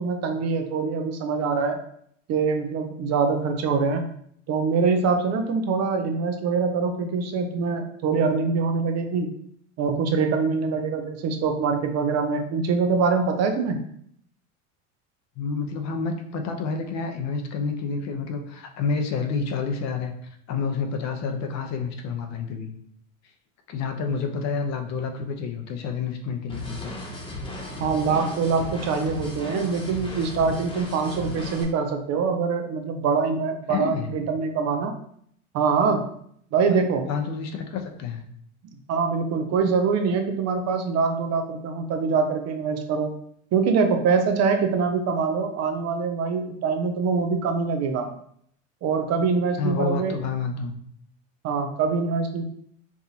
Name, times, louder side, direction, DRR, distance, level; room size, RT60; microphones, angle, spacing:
voice 1, 0.0-1.8 2.3-4.1 4.5-9.3 9.8-13.8 27.8-34.9 35.5-36.0 36.5-37.1 38.9-43.2 43.5-48.1 48.8-50.2 51.4-52.4, right 5 dB, 45° right, 6 dB, 0.6 m, -24 dB
voice 2, 15.4-20.1 20.5-22.7 23.7-26.9 33.7-34.1 36.7-36.8 37.1-38.2 49.6-50.8, left 5 dB, 45° left, 5 dB, 0.7 m, -29 dB
sound 1, 26.5-31.6, left 1 dB, 15° left, 1.1 m, -35 dB
4.7 x 2.5 x 2.7 m, 0.66 s
hypercardioid pair, 90°, 38 cm